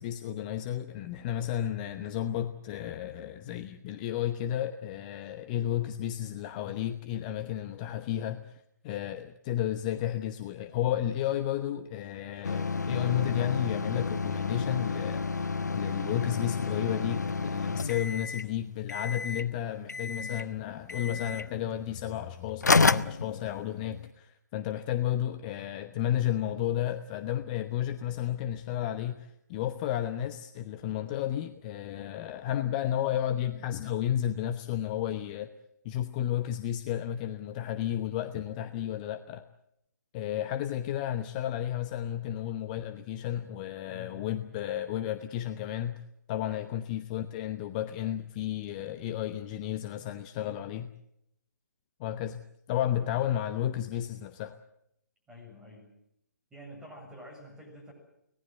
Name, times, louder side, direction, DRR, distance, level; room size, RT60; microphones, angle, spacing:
voice 1, 0.0-35.5 35.8-39.4 40.1-46.0 46.3-50.9 52.0-52.4 52.7-54.5, left 11 dB, 25° left, 9 dB, 0.9 m, -32 dB
sound 1, 12.4-18.5 18.9-19.5 19.9-20.5 20.9-21.5 22.2-22.3 22.6-23.9, left 4 dB, 70° left, 0.9 m, -30 dB
voice 2, 43.9-44.3 46.4-46.7 55.3-55.9 56.5-57.9, left 1 dB, 5° right, 0 dB, 7.3 m, -48 dB
25.0 x 18.5 x 8.0 m, 0.78 s
figure-of-eight pair, 135°, 10 cm